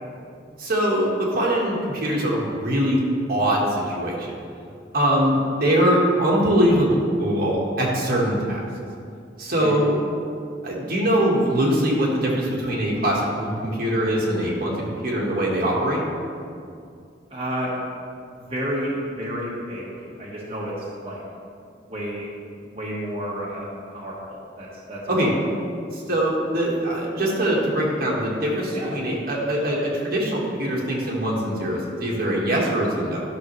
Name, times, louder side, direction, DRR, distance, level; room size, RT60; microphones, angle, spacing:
voice 1, 0.6-3.0 3.3-4.3 4.9-8.6 9.4-10.0 10.6-14.7 15.0-16.0 25.1-25.3 25.9-33.2, equal, 55° right, -3 dB, 1.6 m, -22 dB
voice 2, 17.3-17.7 18.3-21.2 21.9-22.3 22.6-25.3 28.7-28.9, equal, 35° right, -7 dB, 1.4 m, -31 dB
12.0 x 6.3 x 3.2 m, 2.4 s
head